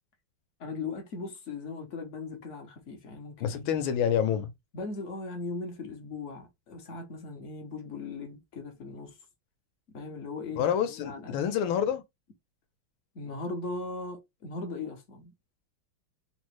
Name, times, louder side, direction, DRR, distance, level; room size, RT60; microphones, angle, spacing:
voice 1, 0.6-3.7 4.7-9.2 9.9-10.7 11.0-11.4 13.1-15.3, left 3 dB, 60° left, 0.7 m, -38 dB
voice 2, 3.4-4.5 10.6-12.0, left 8 dB, 80° left, 1.5 m, -27 dB
3.9 x 2.1 x 3.0 m
omnidirectional pair, 2.3 m